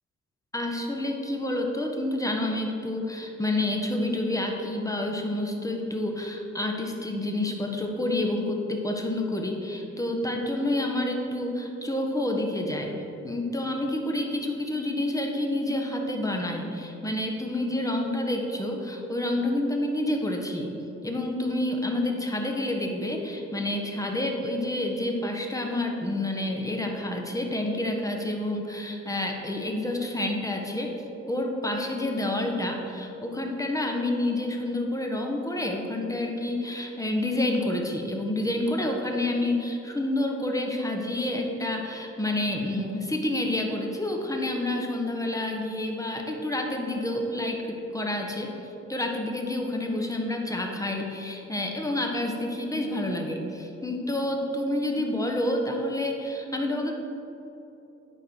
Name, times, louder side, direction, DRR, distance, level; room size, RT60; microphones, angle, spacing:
voice 1, 0.5-12.9 13.2-20.7 21.0-30.9 31.3-48.5 48.9-56.9, left 1 dB, 10° left, 1 dB, 1.4 m, -28 dB
9.6 x 4.8 x 6.4 m, 2.9 s
cardioid pair, 70°, 29 cm